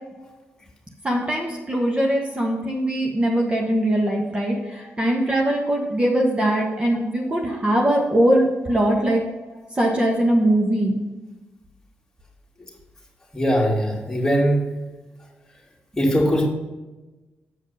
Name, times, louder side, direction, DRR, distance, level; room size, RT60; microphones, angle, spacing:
voice 1, 1.0-9.2 9.7-11.0, right 1 dB, 25° right, -1 dB, 1.3 m, -21 dB
voice 2, 13.3-14.7 16.0-16.5, equal, 10° left, -2 dB, 2.4 m, -20 dB
8.1 x 5.1 x 5.5 m, 1.1 s
cardioid pair, 75°, 5 cm